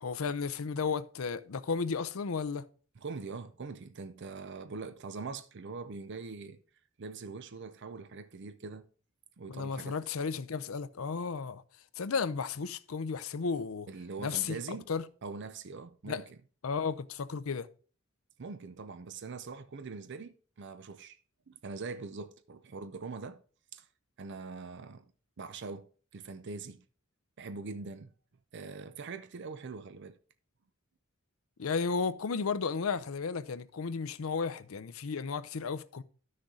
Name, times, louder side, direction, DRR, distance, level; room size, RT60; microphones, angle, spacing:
voice 1, 0.0-2.6 9.5-11.6 12.0-13.9 14.2-14.6 14.9-15.0 16.0-16.2 16.6-17.7 31.6-36.0, left 5 dB, 80° left, 0.6 m, -33 dB
voice 2, 3.0-6.6 7.0-8.9 9.4-10.0 13.9-14.9 15.2-16.3 18.4-21.2 21.5-23.4 23.7-23.9 24.2-25.1 25.4-26.8 27.4-28.1 28.5-30.2, right 4 dB, 55° right, 0.5 m, -42 dB
11.5 x 6.5 x 3.7 m
head